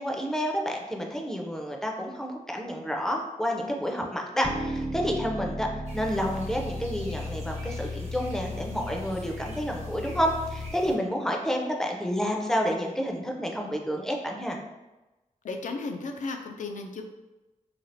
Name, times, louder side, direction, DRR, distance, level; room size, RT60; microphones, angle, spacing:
voice 1, 0.0-5.7 5.9-14.6, equal, 5° left, 1 dB, 0.5 m, -29 dB
sound 1, 4.4-10.7, left 1 dB, 85° right, 1.0 m, -35 dB
sound 2, 5.9-11.0, right 1 dB, 55° right, 0.7 m, -47 dB
voice 2, 15.4-17.0, left 3 dB, 65° left, 4 dB, 0.4 m, -34 dB
3.2 x 2.4 x 2.6 m, 1.1 s
cardioid pair, 75°, 14 cm